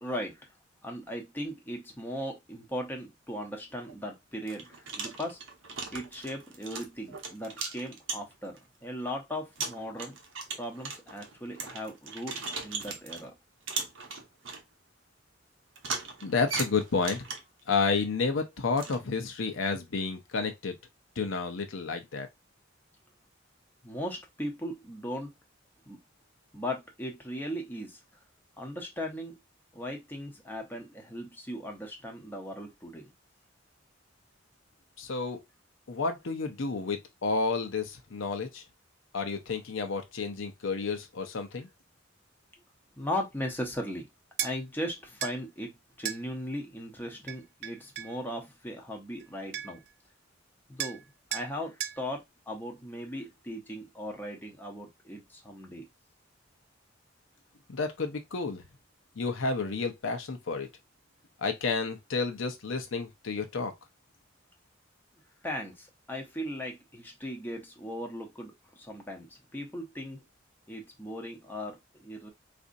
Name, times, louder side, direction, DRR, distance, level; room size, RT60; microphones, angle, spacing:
voice 1, 0.0-0.5 0.8-5.4 5.9-10.2 10.6-13.3 23.8-25.3 25.9-26.0 26.5-28.0 28.6-29.4 29.7-33.1 43.0-44.1 44.4-49.8 50.7-51.0 51.3-55.9 65.4-70.2 70.7-72.3, equal, 10° left, 0.8 m, -38 dB
sound 1, 3.8-3.9 4.5-8.6 9.1-9.2 9.6-13.3 13.7-14.6 15.8-17.6 18.8-19.0, right 4 dB, 80° right, 0.9 m, -38 dB
voice 2, 16.2-17.3 17.7-20.8 21.2-22.3 35.0-35.4 35.9-38.6 39.1-41.7 57.7-58.6 59.2-60.7 61.4-63.7, left 4 dB, 75° left, 0.7 m, -31 dB
sound 2, 44.4-44.6 45.2-45.4 46.0-46.2 47.3-48.1 49.2-49.3 49.5-49.9 50.8-51.0 51.3-51.5 51.8-52.0, right 11 dB, 55° right, 0.4 m, -35 dB
4.1 x 2.6 x 2.6 m
head